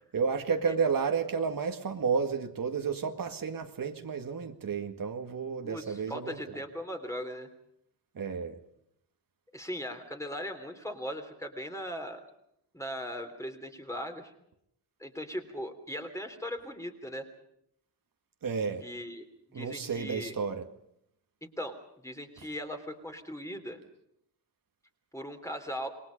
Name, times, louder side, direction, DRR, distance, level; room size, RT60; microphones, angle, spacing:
voice 1, 0.1-6.6 8.2-8.6 18.4-18.8 19.5-20.7 22.4-22.5, right 5 dB, 50° right, 5 dB, 2.0 m, -31 dB
voice 2, 5.6-7.5 9.5-12.2 12.7-14.3 15.0-17.3 18.8-20.3 21.4-21.8 22.0-23.8 25.1-25.9, equal, 5° left, 5 dB, 3.2 m, -39 dB
27.5 x 22.0 x 5.3 m, 0.75 s
wide cardioid pair, 165°, 42 cm